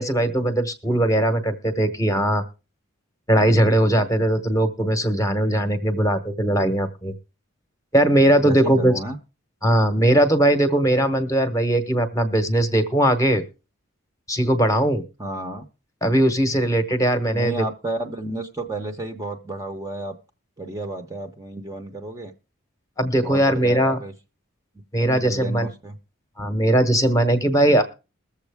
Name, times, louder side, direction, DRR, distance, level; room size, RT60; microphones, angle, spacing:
voice 1, 0.0-2.4 3.3-7.1 7.9-8.9 9.6-13.4 14.3-15.0 16.0-17.6 23.0-24.0 24.9-25.7 26.4-27.8, right 1 dB, 15° left, 9 dB, 0.9 m, -19 dB
voice 2, 8.4-9.2 15.2-15.7 17.3-20.2 20.6-22.3 23.2-24.1 25.0-26.0, right 2 dB, 15° right, 5 dB, 0.7 m, -32 dB
21.5 x 7.2 x 3.4 m, 0.31 s
head